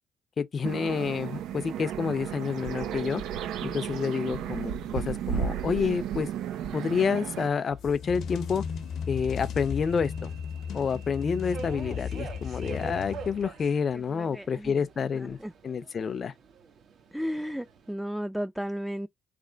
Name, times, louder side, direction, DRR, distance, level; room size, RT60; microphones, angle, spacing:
voice 1, 0.4-3.2 3.7-6.3 6.7-8.6 9.1-10.3 10.7-15.4 15.6-16.3, left 6 dB, 45° left, 0.5 m, -29 dB
sound 1, 0.6-7.5, right 8 dB, 85° right, 0.5 m, -33 dB
voice 2, 3.6-4.1 13.9-15.5 17.1-19.1, equal, ahead, 0.4 m, -35 dB
Subway metro underground, 7.4-17.9, right 6 dB, 60° right, 1.0 m, -47 dB
sound 2, 7.7-13.7, left 6 dB, 75° left, 0.8 m, -35 dB
3.3 x 3.1 x 3.8 m
cardioid pair, 90°, 0 cm